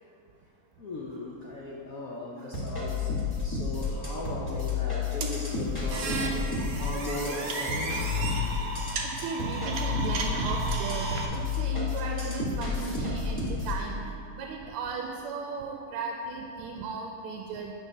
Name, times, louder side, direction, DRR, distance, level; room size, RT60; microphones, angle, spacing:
voice 1, 0.8-3.1 3.4-8.2, left 2 dB, 80° left, -3 dB, 0.7 m, -38 dB
sound 1, 2.5-13.8, left 4 dB, 15° left, 0.8 m, -31 dB
sound 2, 5.2-11.3, right 3 dB, 70° right, 0.8 m, -33 dB
voice 2, 8.8-17.7, right 5 dB, 90° right, 1 dB, 1.5 m, -36 dB
9.1 x 3.8 x 5.3 m, 2.7 s
omnidirectional pair, 2.3 m